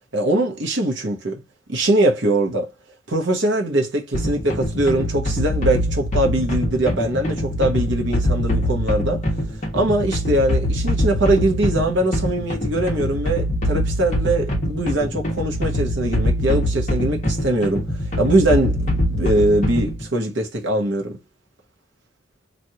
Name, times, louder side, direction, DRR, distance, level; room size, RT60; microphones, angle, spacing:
voice 1, 0.1-1.4 1.7-2.7 3.1-9.2 9.7-17.9 18.2-21.2, right 1 dB, 65° right, 0.9 m, -21 dB
sound 1, 4.1-20.1, equal, 35° left, 1.1 m, -23 dB
3.1 x 2.5 x 2.7 m
head